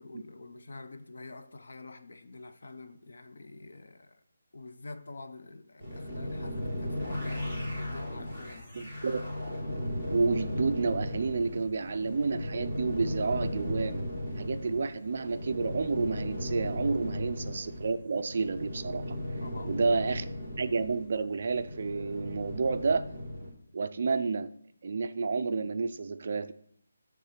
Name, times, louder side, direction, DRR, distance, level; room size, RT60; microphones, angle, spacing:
voice 1, 0.0-4.2 4.5-8.7 17.0-17.2 19.4-20.0, left 3 dB, 55° left, 0.6 m, -47 dB
sound 1, 5.8-23.5, left 1 dB, 30° left, 2.7 m, -36 dB
voice 2, 8.7-9.2 10.1-14.0 14.4-19.2 19.6-20.2 20.6-23.0 23.7-24.5 24.8-26.5, right 4 dB, 35° right, 0.3 m, -30 dB
9.8 x 3.6 x 5.7 m
hypercardioid pair, 180°, 0 cm